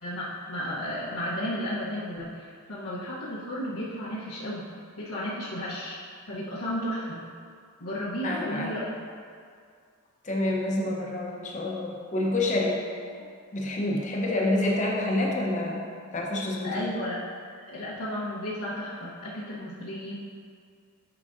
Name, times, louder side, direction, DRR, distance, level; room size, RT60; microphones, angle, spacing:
voice 1, 0.0-4.6 5.0-6.0 6.3-7.2 7.8-8.9 16.6-17.2 17.7-20.1, equal, 75° left, -9 dB, 1.0 m, -33 dB
voice 2, 8.2-8.8 10.2-12.8 13.5-15.9 16.1-16.9, left 1 dB, 35° left, -2 dB, 0.8 m, -28 dB
10.0 x 4.9 x 2.6 m, 2.2 s
head